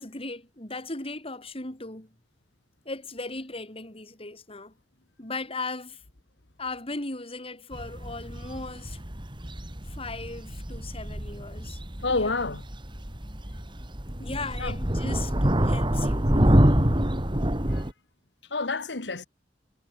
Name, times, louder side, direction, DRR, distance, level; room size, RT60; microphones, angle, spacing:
voice 1, 0.0-2.1 2.8-4.7 5.2-6.0 6.6-9.0 9.9-11.8 12.1-12.3 14.2-16.7, left 3 dB, 35° left, 5.1 m, -37 dB
sound 1, 7.7-17.9, equal, 30° right, 3.1 m, -26 dB
voice 2, 12.0-12.6 14.6-14.8 17.7-17.9 18.4-19.3, left 3 dB, 80° left, 1.9 m, -29 dB
head